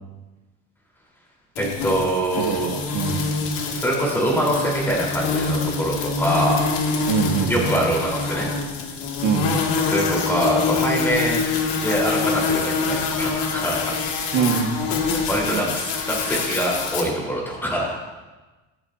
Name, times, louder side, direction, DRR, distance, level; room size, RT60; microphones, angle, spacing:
sound 1, 1.6-17.0, left 4 dB, 90° left, 2.4 m, -25 dB
voice 1, 1.6-2.7 3.7-6.7 7.5-8.5 9.8-11.4 11.8-13.9 15.3-18.0, right 1 dB, 5° left, -5 dB, 4.1 m, -24 dB
voice 2, 2.4-3.3 7.1-7.9 9.2-9.5 14.3-14.8 15.4-15.7, right 7 dB, 60° right, 2 dB, 1.8 m, -24 dB
25.0 x 8.7 x 2.8 m, 1.2 s
cardioid pair, 175°, 33 cm